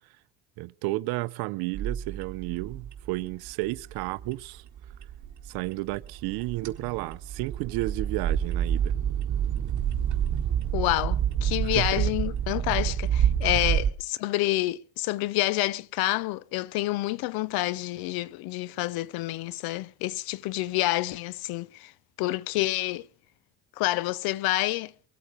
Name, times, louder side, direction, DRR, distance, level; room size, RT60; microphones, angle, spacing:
voice 1, 0.6-4.6 5.4-8.9 11.8-12.0, right 20 dB, 85° right, 0.6 m, -32 dB
sound 1, 1.7-13.9, right 9 dB, 55° right, 1.6 m, -28 dB
voice 2, 10.7-21.9 22.2-23.1 23.8-24.9, left 18 dB, 80° left, 0.7 m, -28 dB
23.0 x 8.4 x 4.9 m
supercardioid pair, 85°, 36 cm